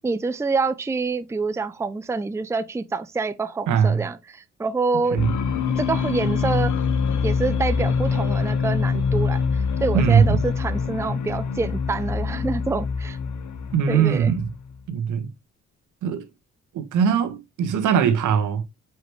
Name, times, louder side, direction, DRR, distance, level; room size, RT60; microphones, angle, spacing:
voice 1, 0.0-5.2 5.8-6.7 7.2-13.2 13.9-14.3, right 4 dB, 10° right, 0.5 m, -26 dB
voice 2, 3.7-4.0 5.1-5.3 9.9-10.4 13.7-14.5 14.9-15.3 16.0-16.2 16.7-18.6, right 7 dB, 80° right, 1.5 m, -20 dB
sound 1, 5.2-14.8, left 5 dB, 70° left, 1.4 m, -25 dB
6.4 x 4.9 x 3.1 m
cardioid pair, 90°, 30 cm